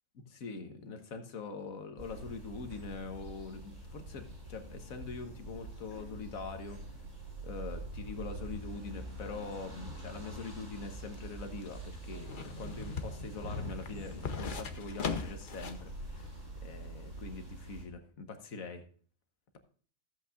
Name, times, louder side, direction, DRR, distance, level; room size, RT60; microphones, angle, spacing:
voice 1, 0.3-6.8 7.4-16.3 16.6-18.9, left 4 dB, 80° left, 7 dB, 1.6 m, -43 dB
sound 1, 2.0-17.8, right 2 dB, 60° right, 5.3 m, -45 dB
sound 2, 10.8-15.9 16.2-16.3, left 5 dB, 45° left, 0.9 m, -40 dB
14.5 x 8.3 x 2.5 m, 0.43 s
omnidirectional pair, 1.4 m